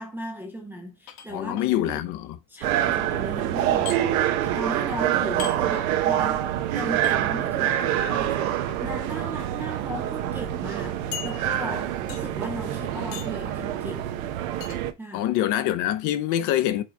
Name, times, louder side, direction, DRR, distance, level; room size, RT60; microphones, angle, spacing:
voice 1, 0.0-2.1 2.5-4.1 4.4-14.1 14.7-15.3, equal, 5° right, 0.5 m, -37 dB
sound 1, 1.1-1.7 3.9-4.0 5.4-5.6 7.0-7.2 8.5-8.8 9.5-9.6 10.0-10.1 11.1-11.7 12.1-12.4 13.1-13.4 14.6-14.8, left 9 dB, 70° left, 1.5 m, -38 dB
voice 2, 1.3-2.2 15.1-16.8, left 12 dB, 45° left, 0.7 m, -25 dB
sound 2, 2.6-14.9, right 12 dB, 75° right, 1.1 m, -26 dB
5.7 x 3.8 x 4.5 m
cardioid pair, 165°, 41 cm